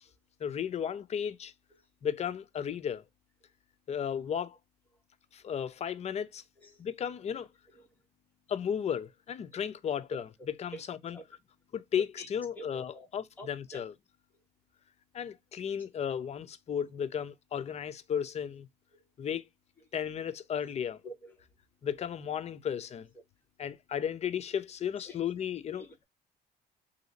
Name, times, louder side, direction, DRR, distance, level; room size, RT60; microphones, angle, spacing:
voice 1, 0.4-1.5 2.0-3.0 3.9-4.6 5.3-6.4 6.8-7.5 8.5-10.2 10.6-11.2 11.7-13.9 15.1-18.7 19.2-19.4 19.9-21.0 21.8-23.1 23.6-25.8, left 8 dB, 40° left, 0.5 m, -34 dB
voice 2, 6.6-6.9 7.3-7.5 7.7-8.0 9.4-9.6 10.1-10.2 10.7-10.8 11.1-11.2 12.2-12.3 12.5-13.1 13.4-13.8 14.3-14.4 15.7-15.9 18.9-19.1 19.8-19.9 21.0-21.4 25.0-25.2 25.7-26.0, right 1 dB, 10° left, 1.4 m, -48 dB
3.1 x 2.7 x 3.9 m
cardioid pair, 110°, 17 cm